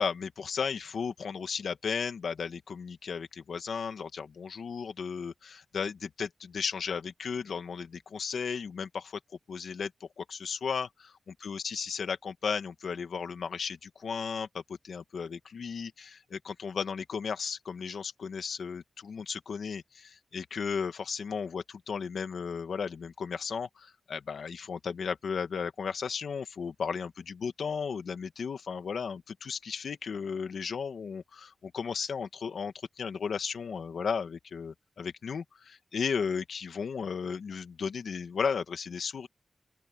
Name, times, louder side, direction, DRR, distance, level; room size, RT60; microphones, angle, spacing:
voice 1, 0.0-9.2 9.5-39.3, left 6 dB, 85° left, 1.9 m, -35 dB
open air
cardioid pair, 50°, 0 cm